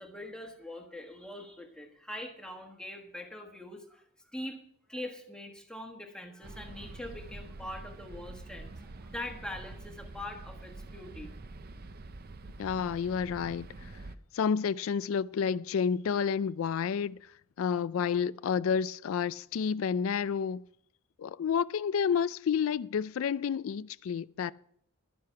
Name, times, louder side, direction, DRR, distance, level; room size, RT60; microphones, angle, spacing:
voice 1, 0.0-4.6 4.9-11.3, left 1 dB, 5° left, 1.3 m, -43 dB
sound 1, 6.4-14.2, right 2 dB, 45° right, 0.6 m, -46 dB
voice 2, 12.6-13.9 14.3-17.2 17.6-20.6 21.2-24.5, left 7 dB, 70° left, 0.3 m, -30 dB
11.5 x 9.5 x 5.7 m
head